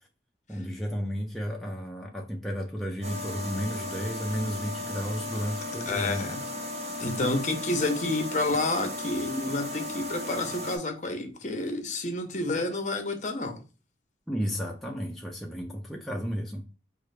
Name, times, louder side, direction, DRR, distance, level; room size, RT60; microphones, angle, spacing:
voice 1, 0.5-6.3 14.3-16.6, equal, ahead, 0.4 m, -33 dB
sound 1, 3.0-10.8, left 2 dB, 35° right, 0.8 m, -36 dB
voice 2, 5.8-6.4 7.0-13.6, left 2 dB, 40° left, 0.7 m, -29 dB
4.4 x 2.4 x 3.2 m
head